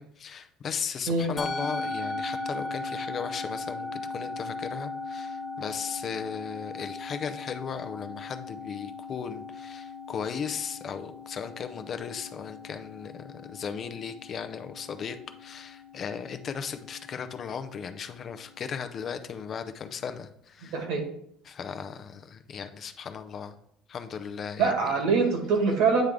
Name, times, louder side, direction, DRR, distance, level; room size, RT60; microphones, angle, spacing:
voice 1, 0.0-20.8 21.4-23.6 23.9-24.7, left 7 dB, 35° left, 9 dB, 0.5 m, -36 dB
Musical instrument, 1.4-19.9, left 3 dB, 15° left, 1.1 m, -39 dB
voice 2, 20.6-21.0 24.6-26.0, right 4 dB, 70° right, 3 dB, 1.7 m, -24 dB
9.0 x 3.4 x 3.7 m, 0.69 s
cardioid pair, 140°, 0 cm